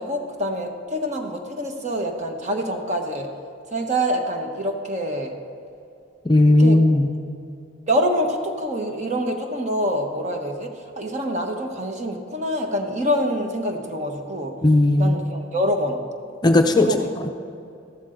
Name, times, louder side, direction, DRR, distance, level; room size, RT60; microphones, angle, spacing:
voice 1, 0.0-3.3 3.7-5.3 6.6-6.8 7.9-10.7 11.0-14.5 15.0-16.0 16.9-17.1, equal, 35° right, 3 dB, 1.2 m, -25 dB
voice 2, 6.2-7.1 14.6-15.2 16.4-17.3, left 2 dB, 20° left, 4 dB, 0.5 m, -16 dB
14.0 x 12.0 x 3.9 m, 2.6 s
head